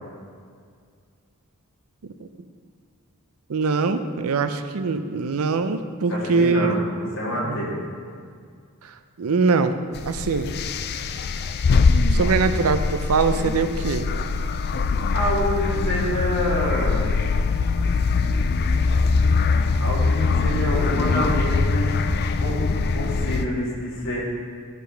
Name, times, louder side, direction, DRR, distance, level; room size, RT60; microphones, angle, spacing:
voice 1, 3.5-6.8 7.4-7.7 8.8-9.8 10.1-10.5 12.1-14.1, right 4 dB, 75° right, 10 dB, 0.5 m, -23 dB
voice 2, 6.1-7.8 15.1-17.1 19.8-22.0 22.4-24.2, equal, 65° left, -5 dB, 2.6 m, -27 dB
sound 1, 10.0-23.5, left 4 dB, 45° left, 0.4 m, -22 dB
11.0 x 5.1 x 5.7 m, 2.1 s
head